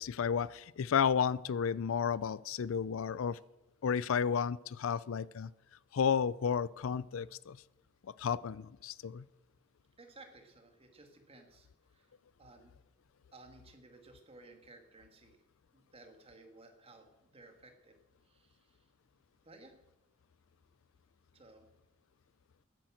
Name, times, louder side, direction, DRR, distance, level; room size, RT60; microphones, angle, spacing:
voice 1, 0.0-3.4 3.8-5.5 5.9-7.6 8.2-9.2, left 7 dB, 75° left, 19 dB, 0.4 m, -32 dB
voice 2, 10.0-11.7 11.9-12.1 12.4-12.8 13.3-15.4 15.7-18.0 18.3-18.8 19.4-19.8 21.3-21.7, right 2 dB, 30° right, 4 dB, 2.0 m, -57 dB
11.0 x 10.0 x 7.8 m, 0.96 s
head